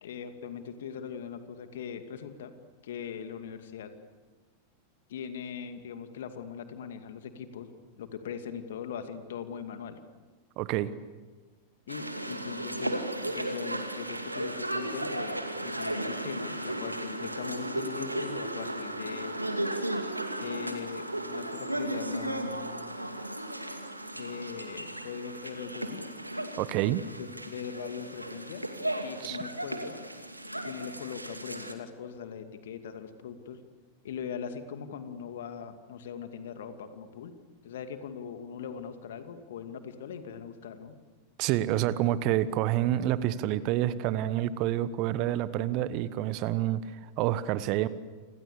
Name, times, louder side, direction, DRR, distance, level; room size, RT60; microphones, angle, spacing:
voice 1, 0.0-2.5 2.8-3.9 5.1-7.7 8.0-10.0 11.9-13.0 13.3-19.4 20.4-22.9 24.1-26.0 27.2-28.6 29.0-29.9 30.6-33.6 34.0-37.3 37.6-41.0, left 7 dB, 60° left, 8 dB, 2.5 m, -40 dB
voice 2, 10.6-10.9 26.6-27.0 29.2-29.4 41.4-47.9, right 13 dB, 40° right, 16 dB, 1.2 m, -28 dB
sound 1, 11.9-31.7, right 1 dB, 85° right, 2.3 m, -35 dB
29.0 x 26.5 x 7.0 m, 1.3 s
figure-of-eight pair, 90°, 0 cm